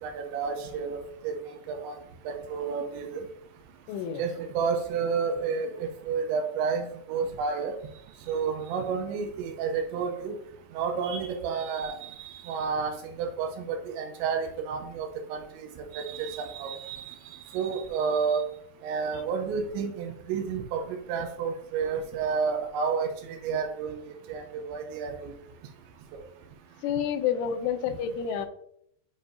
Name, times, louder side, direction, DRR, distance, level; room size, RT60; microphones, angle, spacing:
voice 1, 0.0-2.0 2.3-3.3 4.2-7.8 8.2-10.4 10.7-18.4 18.8-25.3 26.1-26.2 27.9-28.0, right 5 dB, 80° right, 5 dB, 2.9 m, -31 dB
voice 2, 3.9-4.2 26.8-28.5, left 8 dB, 85° left, 9 dB, 3.0 m, -29 dB
9.2 x 5.1 x 2.6 m, 0.70 s
omnidirectional pair, 5.5 m